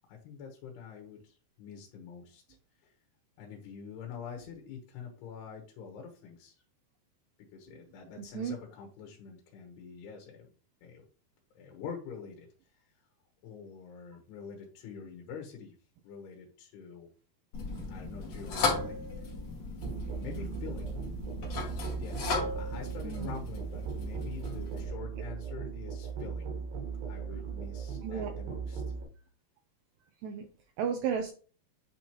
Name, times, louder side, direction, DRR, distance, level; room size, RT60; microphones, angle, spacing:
voice 1, 0.1-2.4 2.8-2.9 3.4-6.6 7.5-10.5 10.8-11.0 11.6-12.5 13.4-15.7 16.0-17.1 17.9-19.3 20.2-20.9 22.0-26.5 27.1-28.8, left 6 dB, 85° left, 2 dB, 3.1 m, -45 dB
voice 2, 8.2-8.6 23.0-23.3 28.0-28.3 30.2-30.5 30.8-31.3, right 7 dB, 85° right, 6 dB, 2.0 m, -34 dB
sound 1, 17.5-24.9, left 3 dB, 50° left, 2.4 m, -36 dB
Musical instrument, 19.8-29.0, right 6 dB, 70° right, 3.1 m, -38 dB
8.9 x 4.4 x 2.9 m, 0.39 s
omnidirectional pair, 4.6 m